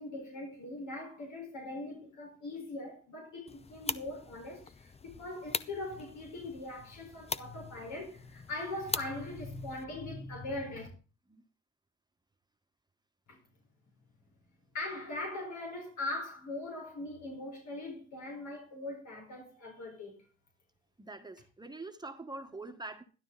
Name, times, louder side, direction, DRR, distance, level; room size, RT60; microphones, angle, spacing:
voice 1, 0.0-10.9 13.3-13.4 14.7-20.2, left 2 dB, 75° left, 4.8 m, -41 dB
sound 1, 3.5-9.8, left 4 dB, 20° left, 0.6 m, -42 dB
voice 2, 21.0-23.0, right 2 dB, 15° right, 1.3 m, -44 dB
12.0 x 12.0 x 4.0 m
cardioid pair, 90°, 30 cm